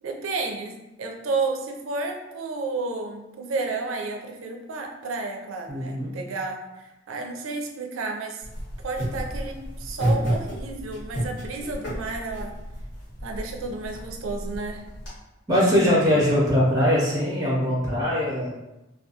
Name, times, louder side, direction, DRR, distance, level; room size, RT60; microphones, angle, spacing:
voice 1, 0.0-8.4 8.8-12.6 13.2-14.8, right 3 dB, 90° right, 2 dB, 0.4 m, -31 dB
voice 2, 5.7-6.1 15.5-18.5, equal, 15° right, -5 dB, 0.5 m, -21 dB
sound 1, 8.4-15.1, right 1 dB, 85° left, 1.3 m, -31 dB
2.3 x 2.2 x 2.7 m, 0.97 s
head